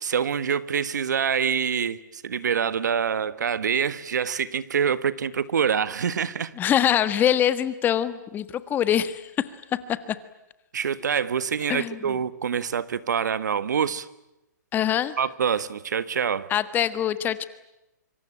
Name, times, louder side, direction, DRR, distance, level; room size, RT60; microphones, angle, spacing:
voice 1, 0.0-6.5 10.7-14.1 15.2-16.5, right 7 dB, 70° right, 1.6 m, -26 dB
voice 2, 6.6-9.3 9.9-10.2 11.7-12.1 14.7-15.1 16.5-17.5, left 10 dB, 20° left, 1.5 m, -24 dB
26.0 x 25.0 x 8.8 m
hypercardioid pair, 135°, 10 cm